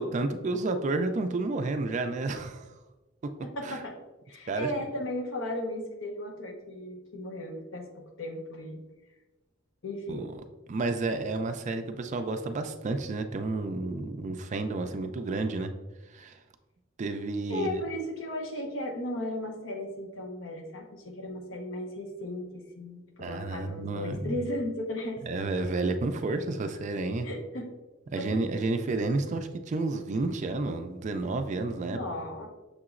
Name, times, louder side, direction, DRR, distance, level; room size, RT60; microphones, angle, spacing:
voice 1, 0.0-2.7 3.6-3.8 4.5-4.7 10.1-10.3 10.7-15.7 16.1-16.4 17.0-17.8 23.2-24.4 25.3-27.3 28.1-32.0, right 3 dB, 40° right, 8 dB, 0.3 m, -31 dB
voice 2, 3.4-4.0 4.3-8.8 9.8-10.3 17.5-25.2 27.2-27.7 28.2-28.4 31.8-32.5, left 1 dB, 70° left, 2 dB, 0.7 m, -36 dB
6.4 x 2.9 x 2.4 m, 1.1 s
head